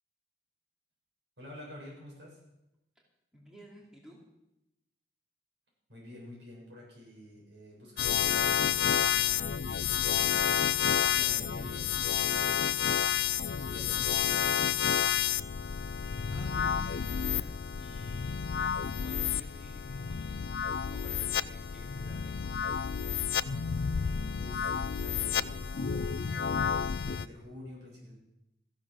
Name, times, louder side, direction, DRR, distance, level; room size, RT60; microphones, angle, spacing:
voice 1, 1.4-2.4 5.9-14.6 23.4-26.4 26.8-28.1, left 1 dB, 85° right, -3 dB, 7.5 m, -49 dB
voice 2, 3.3-4.2 16.3-18.5 19.0-20.6 20.9-22.7, equal, 5° right, -3 dB, 2.8 m, -54 dB
sound 1, 8.0-27.3, left 8 dB, 70° left, 0.4 m, -30 dB
14.5 x 11.0 x 6.5 m, 0.89 s
head